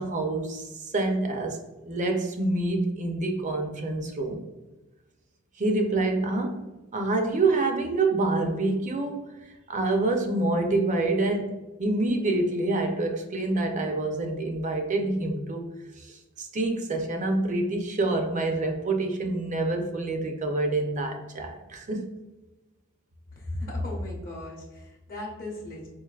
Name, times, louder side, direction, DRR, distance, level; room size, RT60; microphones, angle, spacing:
voice 1, 0.0-1.6 1.9-4.4 5.6-6.6 6.9-9.2 9.7-15.6 16.0-22.0, right 2 dB, 35° right, 4 dB, 0.5 m, -27 dB
voice 2, 23.3-25.9, left 1 dB, 40° left, -2 dB, 0.8 m, -35 dB
4.6 x 2.6 x 2.3 m, 1.1 s
head